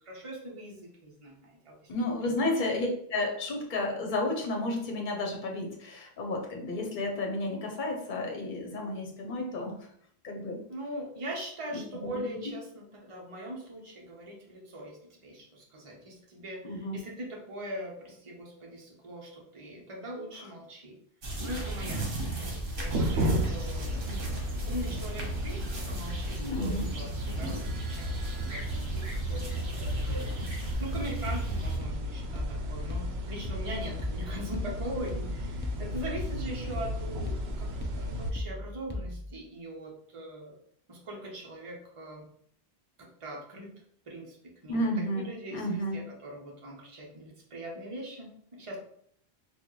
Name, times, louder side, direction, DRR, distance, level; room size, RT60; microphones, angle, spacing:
voice 1, 0.0-2.7 10.7-21.0 21.4-24.3 24.7-29.0 29.3-40.5 40.9-42.3 43.0-43.7 44.0-48.8, right 1 dB, 35° right, -2 dB, 0.9 m, -41 dB
voice 2, 1.9-9.7 10.2-10.6 11.7-12.2 16.6-17.0 26.4-26.9 44.7-46.1, left 1 dB, 50° left, 2 dB, 0.9 m, -32 dB
sound 1, 21.2-31.8, right 2 dB, 60° right, 1.2 m, -35 dB
sound 2, 22.8-38.3, equal, 80° right, 0.8 m, -35 dB
sound 3, 30.7-39.4, left 1 dB, 20° left, 0.3 m, -38 dB
4.2 x 2.4 x 3.1 m, 0.64 s
omnidirectional pair, 1.1 m